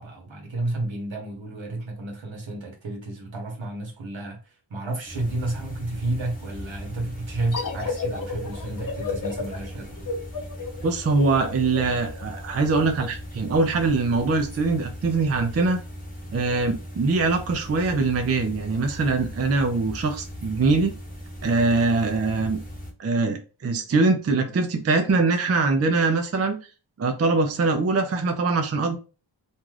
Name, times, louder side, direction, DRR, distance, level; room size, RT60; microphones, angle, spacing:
voice 1, 0.0-10.1, right 2 dB, 70° right, 1.0 m, -31 dB
sound 1, 5.1-22.9, equal, 15° left, 0.9 m, -39 dB
sound 2, 7.5-12.8, left 4 dB, 45° left, 0.7 m, -33 dB
voice 2, 10.8-15.8 16.3-20.9 21.4-22.6 23.0-26.6 27.0-29.0, right 3 dB, 35° right, 0.4 m, -23 dB
2.6 x 2.3 x 3.2 m
wide cardioid pair, 70°, 48 cm